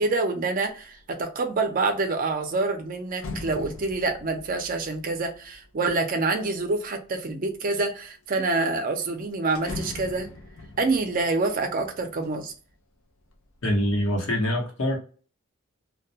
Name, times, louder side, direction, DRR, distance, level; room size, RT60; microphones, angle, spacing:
voice 1, 0.0-10.3 10.8-12.5, right 3 dB, 40° right, 0.4 m, -26 dB
sound 1, 0.8-1.1 1.5-6.9 7.5-8.2 8.5-8.6 8.9-12.8 13.2-13.8, left 2 dB, 90° left, 0.5 m, -42 dB
voice 2, 13.6-15.0, equal, 75° left, 0.9 m, -24 dB
2.2 x 2.1 x 2.6 m
head